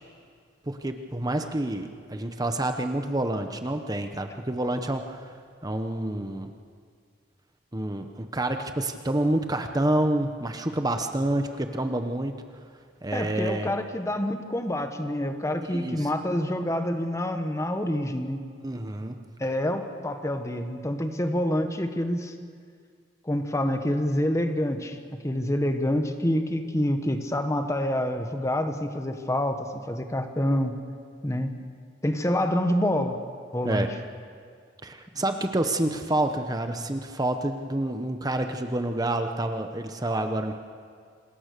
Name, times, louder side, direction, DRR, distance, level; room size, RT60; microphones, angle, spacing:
voice 1, 0.7-5.3 5.6-6.5 7.7-12.3 13.0-13.7 15.7-16.1 18.6-19.2 33.6-33.9 34.8-40.5, right 1 dB, 20° right, 6 dB, 1.0 m, -28 dB
voice 2, 13.1-18.4 19.4-22.3 23.2-25.0 25.2-30.8 31.2-31.5 32.0-33.2 33.5-33.9 35.1-35.2, left 1 dB, 15° left, 7 dB, 1.4 m, -27 dB
27.0 x 20.5 x 6.8 m, 2.1 s
head